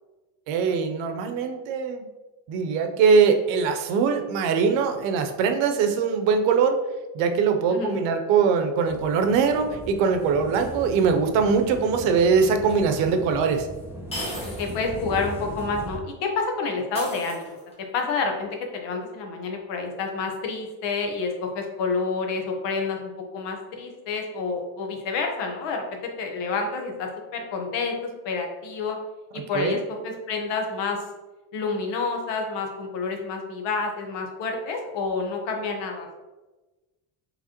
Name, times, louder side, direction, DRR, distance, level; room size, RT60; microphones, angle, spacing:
voice 1, 0.5-2.1 2.5-6.8 7.1-13.7 29.5-29.8, right 5 dB, 85° right, 6 dB, 0.7 m, -22 dB
sound 1, 8.8-16.0, equal, 5° right, 0.6 m, -38 dB
sound 2, 12.7-12.8 14.1-14.8 15.2-15.3 16.9-17.8, equal, 15° left, 1.0 m, -35 dB
voice 2, 14.6-17.6 17.9-25.8 26.2-28.0 28.2-29.0 29.3-31.0 31.5-36.2, left 4 dB, 70° left, 3 dB, 1.0 m, -29 dB
4.9 x 3.3 x 2.9 m, 1.1 s
cardioid pair, 140°, 45 cm